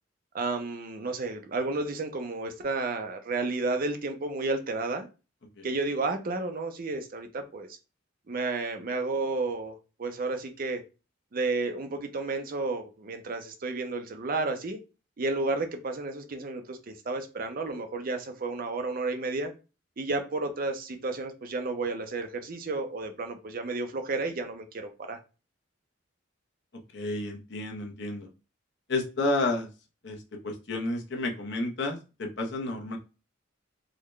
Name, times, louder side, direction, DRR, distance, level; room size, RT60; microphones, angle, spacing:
voice 1, 0.3-5.1 5.6-7.8 8.3-10.8 11.3-14.8 15.2-19.5 20.0-25.2, right 3 dB, 45° right, 0.5 m, -32 dB
voice 2, 26.9-28.3 28.9-29.7 30.0-33.0, left 2 dB, 60° left, 0.8 m, -31 dB
3.8 x 2.2 x 3.1 m
head